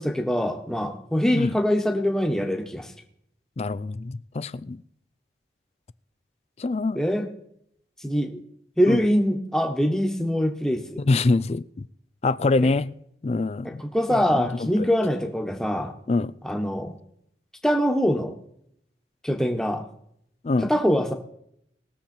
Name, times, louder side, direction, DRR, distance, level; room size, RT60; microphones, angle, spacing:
voice 1, 0.0-2.9 6.9-7.3 8.0-8.4 8.8-11.0 12.6-12.7 13.6-15.9 16.4-17.0 17.6-18.3 19.2-19.8 20.6-21.1, equal, 5° left, 1.3 m, -24 dB
voice 2, 3.6-4.8 6.6-7.0 8.9-9.0 11.0-11.9 12.2-12.9 13.2-13.8 14.1-14.9 16.1-16.3 20.4-20.7, left 3 dB, 35° left, 0.4 m, -25 dB
20.0 x 7.2 x 4.4 m
head